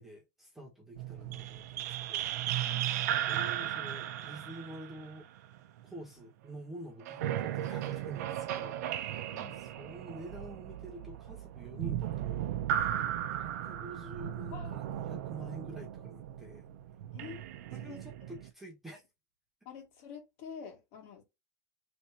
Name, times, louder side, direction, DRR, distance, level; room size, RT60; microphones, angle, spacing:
voice 1, 0.0-2.3 3.2-5.3 5.8-9.3 9.6-12.9 13.4-16.7 17.7-19.0, right 1 dB, 5° right, 1.2 m, -48 dB
sound 1, 0.9-6.0 7.0-18.5, right 11 dB, 85° right, 0.5 m, -36 dB
voice 2, 2.6-3.2 9.3-9.6 12.9-13.1 14.5-14.8 17.1-17.4 17.8-18.0 19.7-21.2, left 7 dB, 55° left, 1.9 m, -48 dB
3.5 x 2.8 x 4.3 m
supercardioid pair, 165°, 9 cm